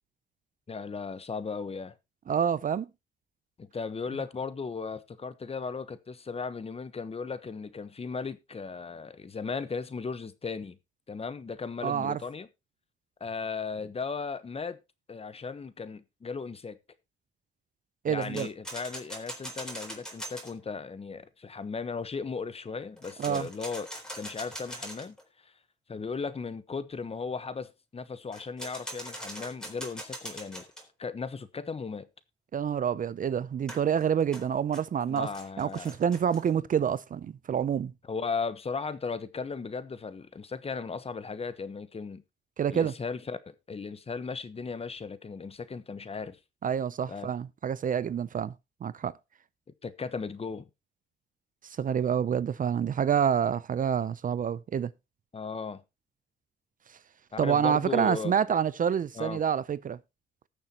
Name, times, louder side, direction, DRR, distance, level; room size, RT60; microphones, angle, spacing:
voice 1, 0.7-1.9 3.6-10.8 11.1-12.5 13.2-14.8 15.1-16.8 18.1-23.9 24.2-25.1 25.4-25.5 25.9-30.6 31.0-32.1 35.1-36.0 38.1-42.2 42.7-46.4 47.1-47.3 49.8-50.7 55.3-55.8 57.3-58.4 59.1-59.4, left 5 dB, 30° left, 1.1 m, -36 dB
voice 2, 2.3-2.9 11.8-12.2 18.0-18.5 23.2-23.5 32.5-35.3 35.6-37.9 42.6-42.9 46.6-48.5 48.8-49.2 51.8-54.9 57.4-60.0, right 8 dB, 45° right, 0.6 m, -27 dB
sound 1, 18.2-20.5 23.0-25.2 28.3-30.8 33.7-36.5, equal, 5° left, 3.9 m, -42 dB
19.0 x 6.8 x 2.9 m
cardioid pair, 90°, 20 cm